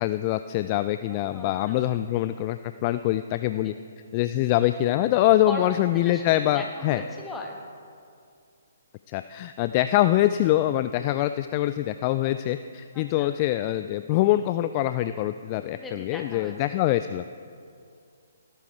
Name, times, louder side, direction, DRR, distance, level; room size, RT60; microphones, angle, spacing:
voice 1, 0.0-3.7 4.1-7.0 9.1-17.3, left 14 dB, 30° left, 11 dB, 0.3 m, -24 dB
voice 2, 1.1-1.7 3.6-3.7 5.5-5.6 6.0-7.6 12.9-13.3 15.7-16.8, left 2 dB, 10° left, 1 dB, 1.5 m, -39 dB
17.5 x 11.5 x 3.4 m, 2.3 s
figure-of-eight pair, 130°, 0 cm